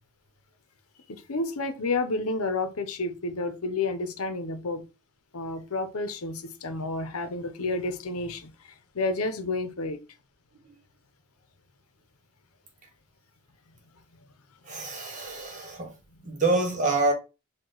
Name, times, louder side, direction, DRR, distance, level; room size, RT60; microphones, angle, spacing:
voice 1, 1.1-4.9 5.3-10.0 14.7-14.9 16.1-16.2, left 3 dB, 80° left, 0.7 m, -30 dB
voice 2, 14.6-15.9 16.2-17.1, right 3 dB, 35° right, 1.2 m, -26 dB
4.8 x 2.3 x 3.8 m
head